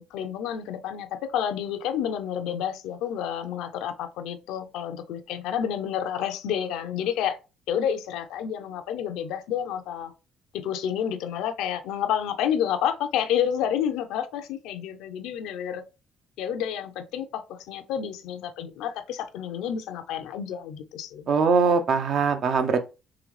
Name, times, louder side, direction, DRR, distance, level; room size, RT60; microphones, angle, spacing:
voice 1, 0.0-7.4 7.7-10.1 10.5-15.8 16.4-21.3, left 9 dB, 90° left, 0.4 m, -29 dB
voice 2, 21.3-22.8, right 5 dB, 60° right, 0.6 m, -22 dB
3.8 x 3.0 x 3.1 m
cardioid pair, 100°, 0 cm